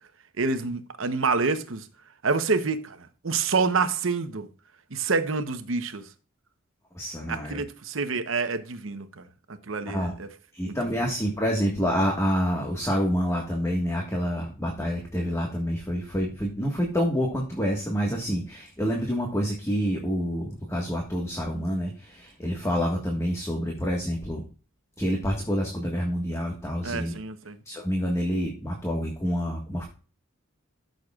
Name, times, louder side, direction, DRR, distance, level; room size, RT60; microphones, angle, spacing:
voice 1, 0.4-1.8 2.2-4.5 4.9-6.0 7.3-9.2 9.7-10.3 10.7-10.8 26.8-27.6, right 4 dB, 70° right, 0.9 m, -27 dB
voice 2, 6.9-7.6 9.9-10.1 10.5-24.4 25.0-27.2 27.6-29.8, equal, 15° left, 1.5 m, -27 dB
13.5 x 6.6 x 2.4 m
head